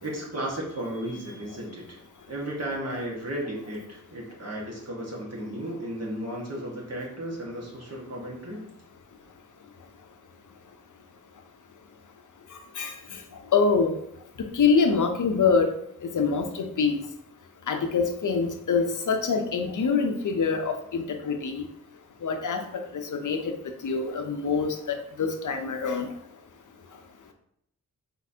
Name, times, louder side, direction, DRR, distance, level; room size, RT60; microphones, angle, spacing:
voice 1, 0.0-2.0 2.3-8.7, right 1 dB, 45° right, -3 dB, 1.4 m, -34 dB
voice 2, 13.5-13.9 14.5-15.7 16.0-17.0 17.7-21.6 22.2-22.6 23.1-23.5 23.8-26.1, left 5 dB, 60° left, 5 dB, 0.7 m, -25 dB
4.2 x 4.0 x 2.7 m, 0.74 s
wide cardioid pair, 75°, 34 cm